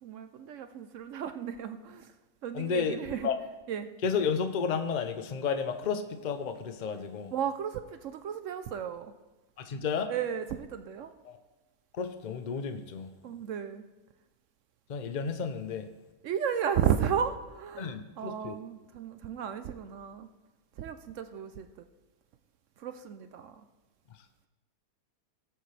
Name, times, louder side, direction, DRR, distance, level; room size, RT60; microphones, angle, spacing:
voice 1, 0.0-2.2 2.4-3.3 3.7-3.9 7.3-9.1 10.1-11.1 13.2-13.9 16.2-20.3 20.8-21.9 22.8-23.7, right 8 dB, 65° right, 10 dB, 0.8 m, -34 dB
voice 2, 2.5-3.4 4.0-7.3 9.6-10.1 11.3-11.4 11.9-13.1 14.9-15.9 17.8-18.6, left 6 dB, 75° left, 8 dB, 0.4 m, -32 dB
17.5 x 8.0 x 3.3 m, 1.1 s
omnidirectional pair, 1.6 m